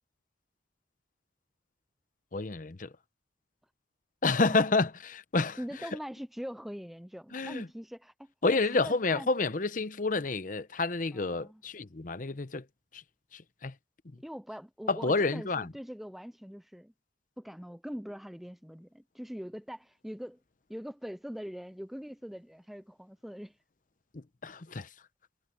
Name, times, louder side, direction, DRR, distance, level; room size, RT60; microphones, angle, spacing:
voice 1, 2.3-2.9 4.2-5.9 7.3-7.7 8.4-12.7 12.9-13.0 13.3-13.7 14.0-14.2 14.9-15.7 24.1-24.9, left 3 dB, 45° left, 0.8 m, -29 dB
voice 2, 5.6-9.3 11.1-11.6 14.2-16.9 17.4-20.4 20.7-23.6, equal, ahead, 0.4 m, -42 dB
head